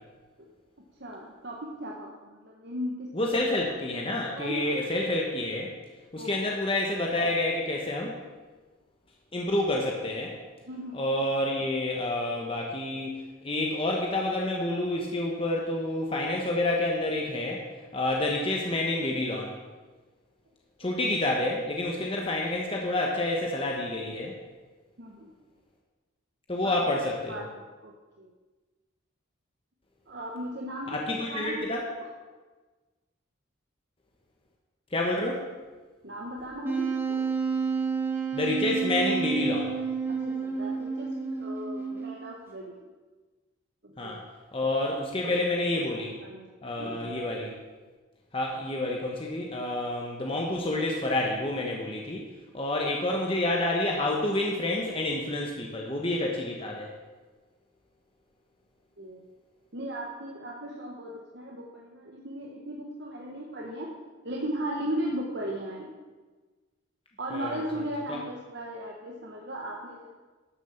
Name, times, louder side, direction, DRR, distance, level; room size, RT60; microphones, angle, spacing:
voice 1, 1.0-3.1 4.3-4.7 6.2-6.5 10.7-11.0 20.8-20.9 25.0-25.3 26.6-26.8 27.3-27.5 27.8-27.9 28.2-28.3 30.1-31.9 36.0-37.2 40.1-41.1 41.4-42.8 43.8-44.2 45.2-45.3 46.2-46.5 46.8-47.2 59.0-59.2 59.7-63.9 64.2-65.9 67.2-70.2, right 1 dB, 55° right, -1 dB, 1.4 m, -37 dB
voice 2, 3.1-5.7 6.1-8.2 9.3-10.4 10.9-17.6 17.9-19.5 20.8-24.4 26.5-27.5 30.9-31.9 34.9-35.5 38.3-39.7 44.0-44.2 44.5-46.1 46.6-47.5 48.3-52.2 52.5-56.9 67.3-68.2, left 1 dB, 30° left, -1 dB, 1.3 m, -29 dB
Wind instrument woodwind instrument, 36.6-42.3, right 5 dB, 10° right, 1.6 m, -30 dB
12.5 x 7.2 x 7.2 m, 1.3 s
head